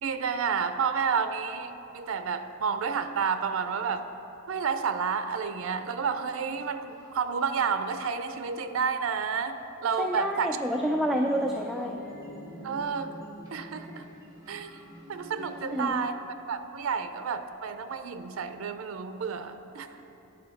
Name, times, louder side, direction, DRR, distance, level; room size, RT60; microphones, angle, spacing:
voice 1, 0.0-4.1 4.5-10.6 12.6-13.2 13.5-14.1 14.5-14.8 15.1-16.1 16.5-19.9, right 6 dB, 80° right, 10 dB, 0.4 m, -30 dB
sound 1, 6.9-8.3 8.6-9.6 10.5-15.9, equal, 15° right, 1.5 m, -47 dB
voice 2, 10.0-12.0 15.7-16.0, equal, ahead, 1 dB, 0.3 m, -28 dB
10.5 x 4.5 x 6.4 m, 2.9 s
head